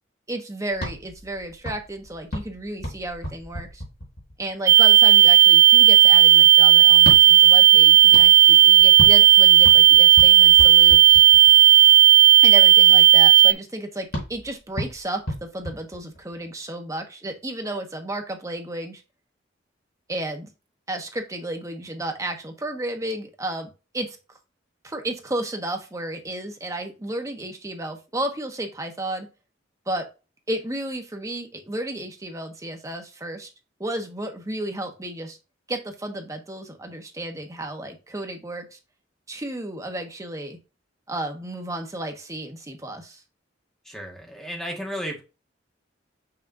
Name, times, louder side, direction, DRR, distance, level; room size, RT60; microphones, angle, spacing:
voice 1, 0.3-3.8 4.4-11.2 12.4-19.0 20.1-20.5 20.9-24.2 24.8-29.3 29.9-30.1 30.5-33.5 33.8-35.4 35.7-38.8 39.3-40.6 41.1-43.2, right 1 dB, 15° right, 4 dB, 1.0 m, -33 dB
sound 1, 0.7-4.6 6.9-11.8 14.1-16.5, equal, 55° left, 3.9 m, -34 dB
sound 2, 4.7-13.5, right 12 dB, 55° right, 0.4 m, -12 dB
voice 2, 43.8-45.2, equal, 5° left, 0 dB, 1.6 m, -33 dB
6.1 x 5.9 x 2.6 m, 0.29 s
head